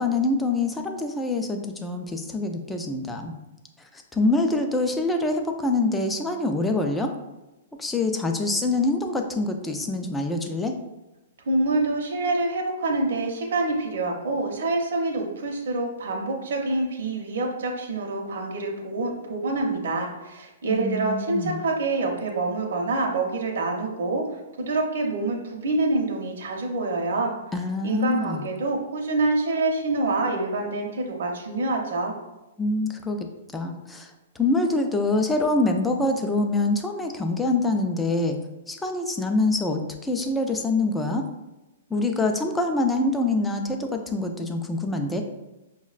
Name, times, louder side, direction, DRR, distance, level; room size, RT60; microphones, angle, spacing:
voice 1, 0.0-3.4 3.9-7.1 7.8-10.7 20.7-21.6 27.5-28.4 32.6-33.3 33.5-34.1 34.4-38.4 38.7-41.2 41.9-45.2, left 2 dB, 10° left, 4 dB, 0.3 m, -25 dB
voice 2, 11.5-24.2 24.6-27.3 27.8-32.1, right 2 dB, 75° right, 0 dB, 0.6 m, -26 dB
5.4 x 2.1 x 2.4 m, 1.0 s
hypercardioid pair, 145°, 0 cm